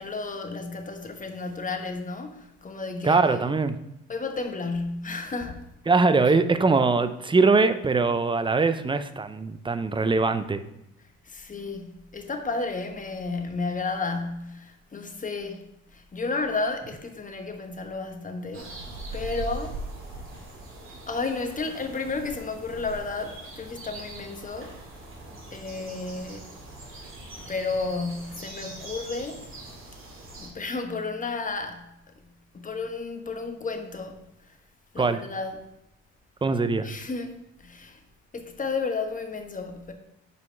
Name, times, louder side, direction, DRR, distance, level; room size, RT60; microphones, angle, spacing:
voice 1, 0.0-3.5 4.1-5.7 11.2-18.7 19.1-19.8 21.1-24.8 25.5-26.5 27.4-29.4 30.4-31.9 32.1-32.2 32.5-34.5 34.9-35.7 36.8-38.0 38.3-39.9, left 3 dB, 25° left, 1.1 m, -32 dB
voice 2, 3.0-3.8 5.9-10.6 35.0-35.2 36.4-36.9, right 4 dB, 15° right, 0.5 m, -22 dB
sound 1, 18.5-30.5, right 2 dB, 40° right, 2.2 m, -41 dB
5.5 x 4.7 x 5.3 m
supercardioid pair, 65°, 31 cm